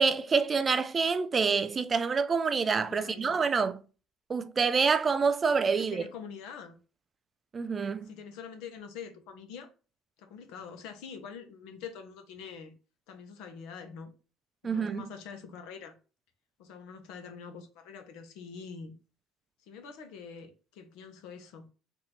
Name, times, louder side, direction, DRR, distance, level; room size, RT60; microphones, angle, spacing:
voice 1, 0.0-3.8 4.3-6.0 7.5-8.1 14.6-15.0, right 5 dB, 25° right, 0.4 m, -27 dB
voice 2, 2.9-3.3 5.8-6.8 8.0-9.7 10.2-12.7 13.1-14.1 14.6-15.9 16.6-18.9 19.7-21.7, left 6 dB, 85° left, 1.0 m, -45 dB
3.9 x 2.7 x 4.3 m
cardioid pair, 135°, 0 cm